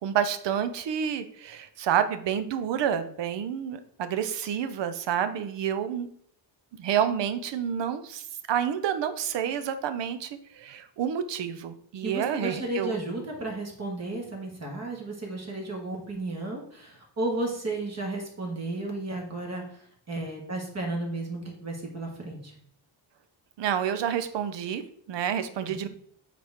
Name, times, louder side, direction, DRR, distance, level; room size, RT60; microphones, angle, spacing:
voice 1, 0.0-6.1 6.8-13.0 23.6-25.9, right 9 dB, 75° right, 11 dB, 0.7 m, -29 dB
voice 2, 12.0-22.5 25.7-25.8, right 2 dB, 35° right, -1 dB, 1.7 m, -33 dB
7.5 x 4.2 x 3.5 m, 0.64 s
cardioid pair, 125°, 43 cm